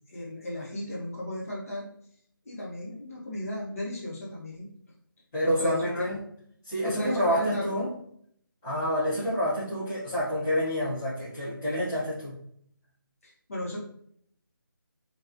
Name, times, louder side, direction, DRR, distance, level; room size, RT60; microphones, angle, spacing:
voice 1, 0.1-1.9 2.4-4.7 5.4-6.2 6.8-7.7 13.2-13.8, left 1 dB, 40° left, -4 dB, 0.8 m, -35 dB
voice 2, 5.3-6.1 6.6-7.9 8.6-12.4, equal, 5° left, -16 dB, 0.4 m, -28 dB
2.3 x 2.3 x 2.4 m, 0.65 s
figure-of-eight pair, 170°, 12 cm